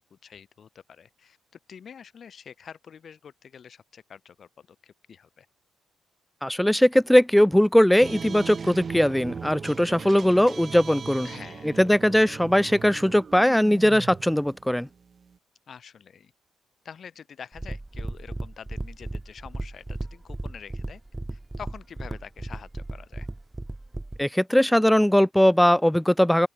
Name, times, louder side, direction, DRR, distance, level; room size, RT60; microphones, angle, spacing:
voice 1, 0.0-1.4 1.7-5.5 11.2-11.8 15.7-16.3 16.8-21.0 21.3-23.3, left 7 dB, 50° left, 7.7 m, -46 dB
voice 2, 6.4-11.3 11.6-14.9 24.2-26.5, equal, 5° left, 0.5 m, -20 dB
sound 1, 8.0-15.4, right 5 dB, 40° right, 3.1 m, -39 dB
sound 2, 17.5-24.2, right 2 dB, 15° right, 3.0 m, -35 dB
open air
cardioid pair, 90°, 0 cm